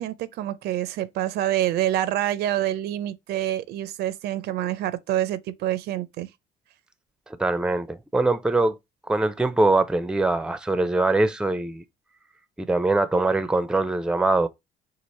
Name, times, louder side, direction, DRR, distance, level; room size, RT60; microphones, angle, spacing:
voice 1, 0.0-6.3, right 13 dB, 75° right, 0.5 m, -27 dB
voice 2, 7.3-8.8 9.1-11.8 12.6-14.5, right 2 dB, 5° right, 0.5 m, -22 dB
4.8 x 2.5 x 4.1 m
cardioid pair, 110°, 17 cm